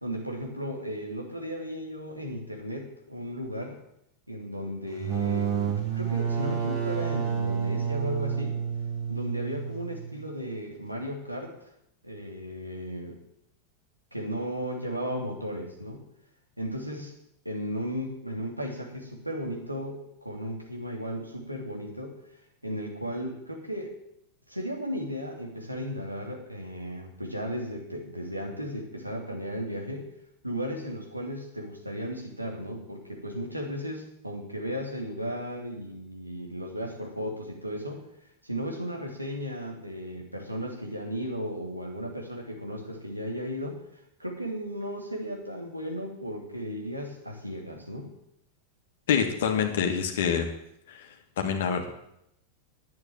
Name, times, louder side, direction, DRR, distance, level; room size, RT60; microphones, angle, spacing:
voice 1, 0.0-3.8 4.3-8.6 9.1-11.7 12.0-13.1 14.1-16.0 16.6-17.1 17.4-22.2 22.6-24.0 24.5-30.1 30.4-38.0 38.4-43.8 44.2-48.1, equal, 90° right, 0 dB, 2.9 m, -35 dB
sound 1, 4.9-10.4, right 7 dB, 40° right, 2.6 m, -30 dB
voice 2, 49.1-50.5 50.9-51.1 51.4-51.9, left 7 dB, 60° left, 3 dB, 1.9 m, -26 dB
11.0 x 8.6 x 8.9 m, 0.78 s
figure-of-eight pair, 90°, 0 cm